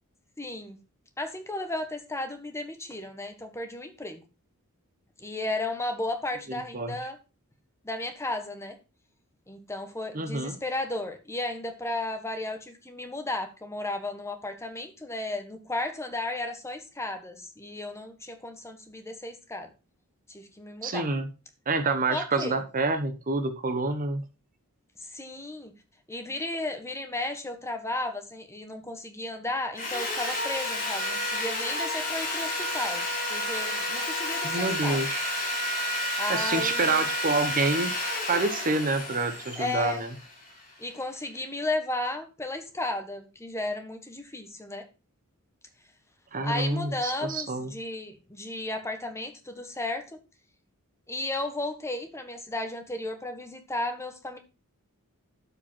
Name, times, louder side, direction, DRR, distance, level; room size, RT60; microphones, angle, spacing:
voice 1, 0.4-0.8 1.2-4.2 5.2-7.2 7.8-8.8 9.5-19.7 20.3-21.1 22.1-22.6 25.1-25.7 26.1-33.0 33.3-35.0 36.2-37.1 39.6-40.0 40.8-44.8 46.4-50.2 51.1-54.4, left 2 dB, 10° left, 6 dB, 1.3 m, -34 dB
voice 2, 6.5-7.0 10.1-10.5 20.8-21.3 21.7-24.2 34.4-35.2 36.3-37.9 38.3-40.1 46.3-47.7, right 3 dB, 40° right, 9 dB, 0.9 m, -27 dB
Sawing, 29.8-40.8, left 1 dB, 35° left, 4.4 m, -31 dB
12.0 x 5.1 x 4.5 m, 0.31 s
head